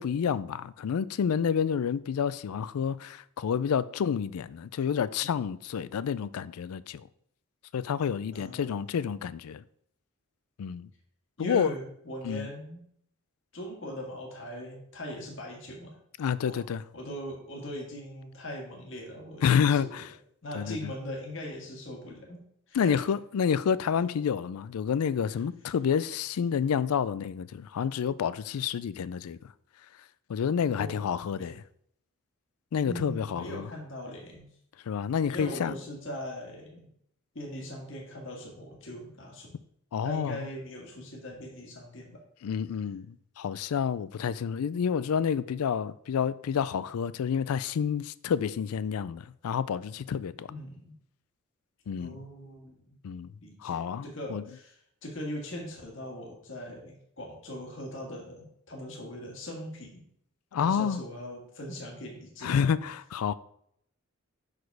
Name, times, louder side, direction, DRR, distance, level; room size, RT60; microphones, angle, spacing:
voice 1, 0.0-7.0 7.7-9.6 10.6-10.9 11.4-11.7 12.2-12.5 16.2-16.8 19.4-20.0 20.5-20.8 22.7-29.4 30.3-31.6 32.7-33.7 34.9-35.7 39.9-40.4 42.4-50.5 51.9-52.2 53.0-53.3 53.6-54.4 60.5-61.0 62.4-63.3, left 7 dB, 85° left, 0.4 m, -29 dB
voice 2, 8.3-9.2 11.4-12.8 13.5-15.9 16.4-16.6 16.9-19.9 20.4-22.4 22.7-23.0 30.8-31.0 31.3-31.5 32.8-34.5 35.3-36.9 37.3-39.5 40.0-42.2 50.5-50.9 52.0-53.0 53.4-60.0 60.5-62.6, equal, 60° left, 1.7 m, -40 dB
6.2 x 4.9 x 4.6 m
head